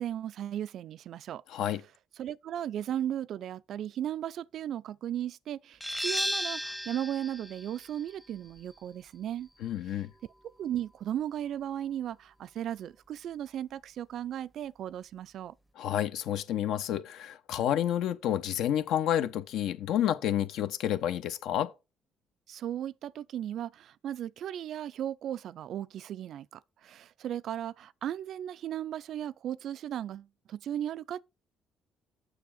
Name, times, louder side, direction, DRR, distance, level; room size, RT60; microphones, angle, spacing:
voice 1, 0.0-1.4 2.2-9.5 10.6-15.5 22.5-31.2, right 10 dB, 65° right, 0.4 m, -36 dB
voice 2, 1.5-1.8 9.6-10.1 15.8-21.7, left 11 dB, 75° left, 0.9 m, -30 dB
sound 1, 5.8-11.2, equal, ahead, 0.6 m, -37 dB
6.9 x 6.2 x 4.9 m
supercardioid pair, 70°, 0 cm